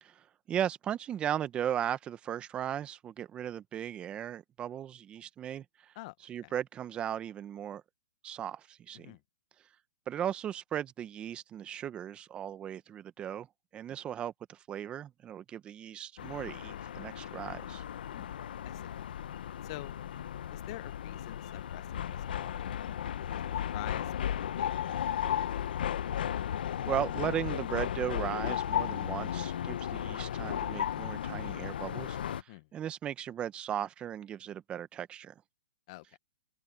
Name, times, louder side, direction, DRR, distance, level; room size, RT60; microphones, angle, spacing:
voice 1, 0.0-5.9 6.2-7.8 8.2-9.2 10.1-13.5 13.7-17.8 26.8-35.3, right 10 dB, 20° right, 1.3 m, -37 dB
sound 1, 16.2-32.4, left 10 dB, 65° left, 1.0 m, -35 dB
voice 2, 18.1-18.4 18.6-18.9 19.6-19.9 20.5-22.5 22.9-24.1 24.4-25.2 32.3-32.7 35.9-36.0, left 21 dB, 40° left, 0.9 m, -47 dB
hypercardioid pair, 135°, 5 cm